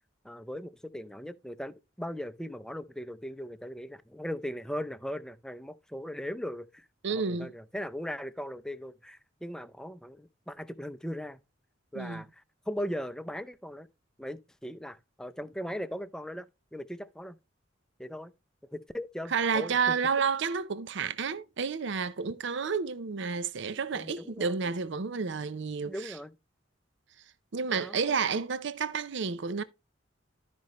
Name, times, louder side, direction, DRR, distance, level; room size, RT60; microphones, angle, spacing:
voice 1, 0.2-11.4 11.9-13.9 14.2-16.5 16.7-17.4 18.0-18.3 18.7-19.9 23.9-24.5 25.9-26.3 27.7-28.1, equal, 5° left, 0.5 m, -39 dB
voice 2, 7.0-7.5 11.9-12.2 19.3-26.2 27.5-29.6, right 5 dB, 65° right, 0.6 m, -30 dB
12.5 x 5.2 x 3.0 m
head